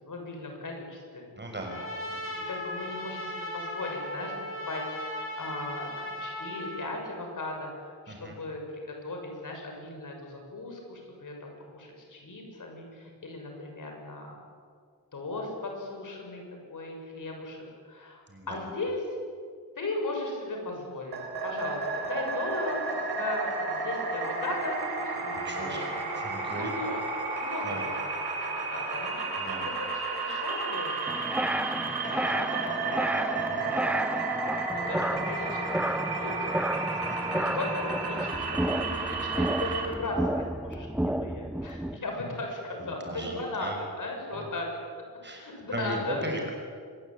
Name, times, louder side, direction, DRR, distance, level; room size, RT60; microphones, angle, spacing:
voice 1, 0.0-1.2 2.5-4.3 4.6-14.4 15.1-16.4 16.7-17.6 17.8-19.1 19.8-21.2 21.4-26.1 26.4-27.0 27.3-28.1 28.4-31.0 31.7-34.2 34.7-36.3 36.7-36.8 37.3-44.7 45.3-46.5, left 2 dB, 55° left, 2 dB, 6.8 m, -37 dB
voice 2, 1.4-1.8 2.2-2.3 8.1-8.4 18.3-18.6 25.4-25.8 26.2-26.7 27.6-27.8 29.4-29.7 33.5-33.6 36.9-37.2 43.0-43.8 44.3-44.4 45.2-45.5 45.7-46.5, right 1 dB, 30° right, 1 dB, 6.1 m, -37 dB
Trumpet, 1.7-6.9, left 1 dB, 35° left, 6.2 m, -37 dB
sound 1, 21.1-39.9, right 3 dB, 80° right, 4.9 m, -32 dB
sound 2, 31.1-42.0, right 1 dB, 5° right, 0.6 m, -31 dB
25.0 x 21.0 x 9.1 m, 2.1 s
wide cardioid pair, 130°, 38 cm